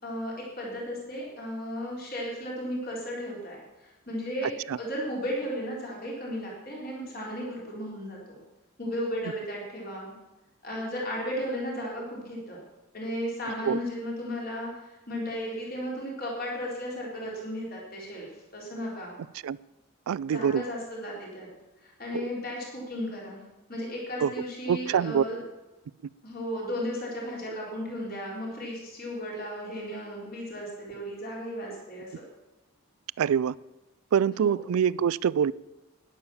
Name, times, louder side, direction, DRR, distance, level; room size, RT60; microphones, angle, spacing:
voice 1, 0.0-4.5 4.8-8.4 8.8-10.1 10.6-12.6 12.9-18.3 18.5-19.1 20.3-21.5 21.8-23.4 23.7-25.4 26.2-32.1 34.4-34.6, equal, 45° left, -3 dB, 3.9 m, -35 dB
voice 2, 20.1-20.6 24.2-24.3 24.7-25.2 33.2-33.5 34.1-35.5, right 8 dB, 85° right, 21 dB, 0.3 m, -24 dB
11.5 x 10.5 x 6.9 m, 1.0 s
head